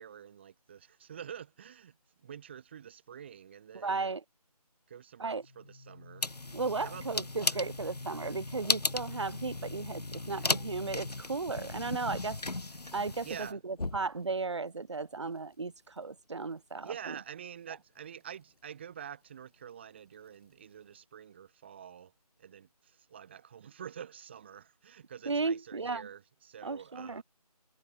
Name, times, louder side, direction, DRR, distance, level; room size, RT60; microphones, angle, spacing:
voice 1, 0.0-4.1 4.9-6.3 6.8-7.0 7.3-7.6 10.3-10.5 13.2-13.6 16.8-22.1 22.4-27.2, right 8 dB, 15° right, 1.5 m, -47 dB
voice 2, 3.7-4.2 5.2-5.4 6.5-12.4 12.9-17.1 25.3-26.1 26.6-27.2, right 4 dB, 45° right, 1.2 m, -35 dB
sound 1, 5.4-11.2 13.7-14.5, left 2 dB, 70° left, 1.8 m, -43 dB
sound 2, 6.2-13.5, left 2 dB, 90° left, 1.2 m, -36 dB
figure-of-eight pair, 160°, 20 cm